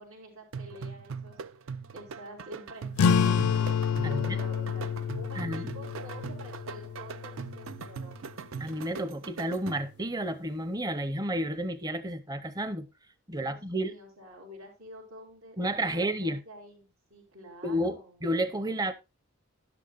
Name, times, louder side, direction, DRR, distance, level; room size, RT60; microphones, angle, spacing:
voice 1, 0.0-1.4 1.7-3.7 4.0-8.2 13.3-18.2, equal, 80° right, 3.9 m, -48 dB
sound 1, 0.5-10.1, right 5 dB, 65° right, 0.5 m, -41 dB
sound 2, 2.9-8.0, left 7 dB, 80° left, 0.4 m, -29 dB
voice 2, 4.0-4.4 5.4-5.7 8.6-12.9 13.3-13.9 15.6-16.4 17.6-18.9, right 1 dB, 15° right, 0.7 m, -31 dB
12.5 x 10.5 x 2.4 m
head